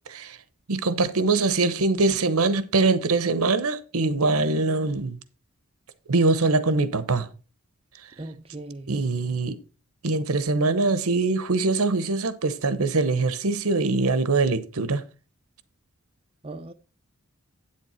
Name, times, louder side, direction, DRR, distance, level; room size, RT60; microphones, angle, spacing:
voice 1, 0.7-5.2 6.1-7.3 8.9-9.6 10.0-15.0, right 3 dB, 80° right, 0.9 m, -23 dB
voice 2, 8.2-8.9 16.4-16.7, right 2 dB, 25° right, 0.5 m, -38 dB
8.8 x 7.5 x 4.3 m
head